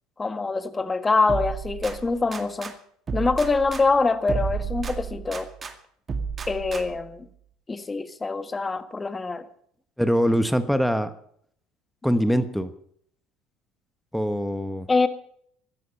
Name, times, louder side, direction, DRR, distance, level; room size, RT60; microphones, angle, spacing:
voice 1, 0.2-2.7 3.1-5.5 6.5-7.2 7.7-9.5 14.9-15.1, left 3 dB, 20° left, 1.5 m, -24 dB
sound 1, 1.3-2.7 3.1-5.7 6.1-7.1, right 5 dB, 35° right, 2.2 m, -32 dB
voice 2, 10.0-11.1 12.0-12.7 14.1-14.9, equal, ahead, 1.3 m, -23 dB
16.0 x 12.5 x 5.4 m
hypercardioid pair, 75°, 0 cm